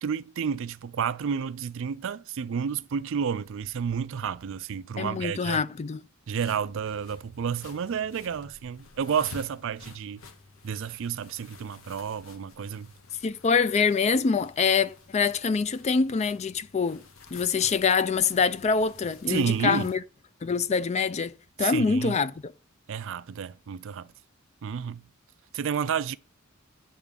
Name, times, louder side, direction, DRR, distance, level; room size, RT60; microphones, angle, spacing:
voice 1, 0.0-5.6 6.3-10.2 10.6-12.9 19.3-19.9 21.6-22.2 22.9-24.1 24.6-25.0 25.5-26.2, right 7 dB, 65° right, 0.4 m, -30 dB
voice 2, 5.0-6.0 13.2-17.0 17.3-20.0 20.4-22.3, left 5 dB, 30° left, 0.4 m, -25 dB
sound 1, 6.3-20.0, left 3 dB, 70° left, 1.1 m, -51 dB
9.0 x 3.6 x 6.8 m
head